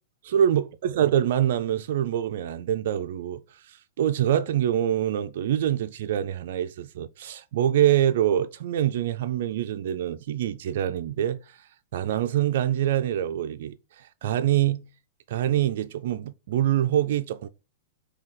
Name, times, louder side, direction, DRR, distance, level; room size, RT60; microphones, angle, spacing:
voice 1, 0.3-14.8 15.3-17.5, right 11 dB, 65° right, 0.3 m, -25 dB
4.0 x 2.7 x 3.7 m
hypercardioid pair, 130°, 0 cm